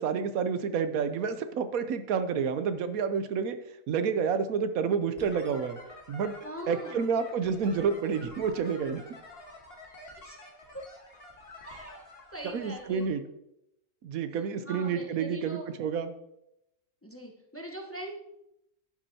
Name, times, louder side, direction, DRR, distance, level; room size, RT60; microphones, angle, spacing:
voice 1, 0.0-3.6 3.9-5.8 6.1-6.3 6.7-9.0 12.5-13.2 14.0-16.1, right 6 dB, 80° right, 10 dB, 1.1 m, -29 dB
sound 1, 5.2-13.1, left 2 dB, 45° left, 1.7 m, -49 dB
voice 2, 6.4-7.1 10.2-10.4 10.7-10.8 11.6-12.0 12.3-13.0 14.6-15.7 17.0-18.2, right 1 dB, 10° left, 1 dB, 1.0 m, -41 dB
11.5 x 8.4 x 2.8 m, 0.82 s
omnidirectional pair, 1.5 m